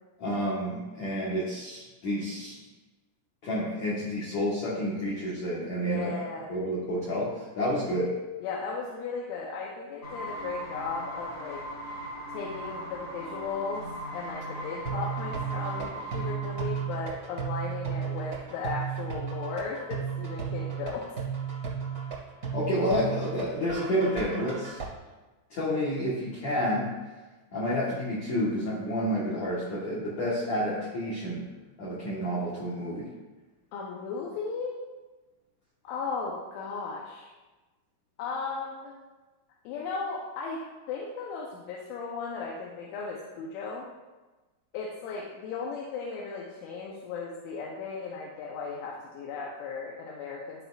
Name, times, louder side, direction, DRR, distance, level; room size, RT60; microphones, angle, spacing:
voice 1, 0.2-2.6 3.4-6.1 6.5-8.2 22.5-24.8 25.5-26.9 27.5-31.5 31.8-33.1, equal, 65° left, -6 dB, 1.9 m, -29 dB
voice 2, 5.8-6.5 8.4-11.6 12.3-13.8 14.1-21.1 33.7-34.8 35.8-37.3 38.2-38.9 39.6-40.6 40.9-43.9 44.7-50.6, left 4 dB, 85° left, -3 dB, 3.3 m, -36 dB
sound 1, 10.0-16.9, equal, 25° left, 2.3 m, -39 dB
sound 2, 14.8-24.8, right 7 dB, 35° right, 1.4 m, -34 dB
14.0 x 5.1 x 2.5 m, 1.2 s
omnidirectional pair, 5.4 m